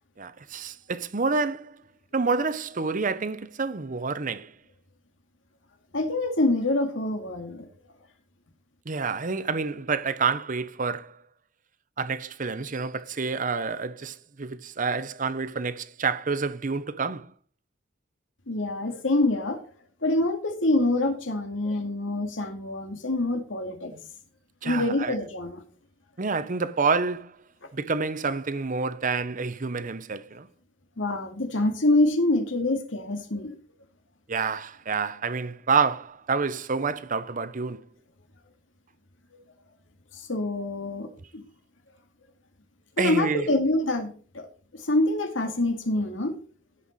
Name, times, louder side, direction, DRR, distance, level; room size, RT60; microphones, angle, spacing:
voice 1, 0.2-1.8 2.1-4.5 8.9-11.2 12.0-17.3 24.6-25.2 26.2-27.4 27.7-30.5 34.3-37.8 43.0-43.5, right 4 dB, 45° right, 0.7 m, -28 dB
voice 2, 5.9-7.7 18.5-19.6 20.0-24.0 24.6-25.6 31.0-33.6 40.1-41.4 43.0-44.5 44.7-46.4, left 2 dB, 90° left, 2.1 m, -26 dB
16.5 x 5.5 x 4.1 m
head